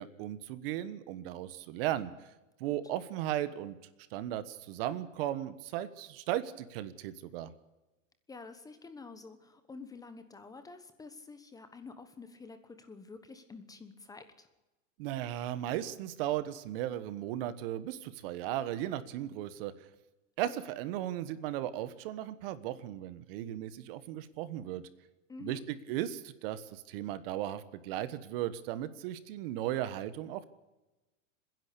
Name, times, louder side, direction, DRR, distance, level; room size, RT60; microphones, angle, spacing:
voice 1, 0.0-2.3 2.6-3.8 4.1-7.5 15.0-19.7 20.4-24.8 25.4-30.4, right 12 dB, 45° right, 14 dB, 1.3 m, -36 dB
voice 2, 8.3-14.5 20.4-20.7 25.3-25.6, left 4 dB, 10° left, 9 dB, 1.1 m, -49 dB
30.0 x 10.5 x 8.4 m, 1.1 s
supercardioid pair, 150°, 39 cm